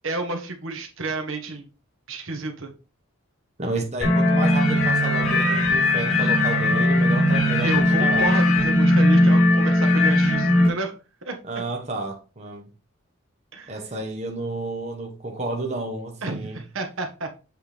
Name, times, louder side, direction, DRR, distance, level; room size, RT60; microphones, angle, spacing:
voice 1, 0.0-1.7 2.1-2.7 7.6-10.9 11.2-11.4 13.5-13.8 16.2-17.3, right 3 dB, 65° right, 1.3 m, -30 dB
voice 2, 3.6-8.4 11.5-12.6 13.7-16.6, right 2 dB, 30° right, 1.2 m, -31 dB
sound 1, 4.0-10.7, left 1 dB, 70° left, 2.9 m, -19 dB
7.7 x 4.5 x 3.4 m
head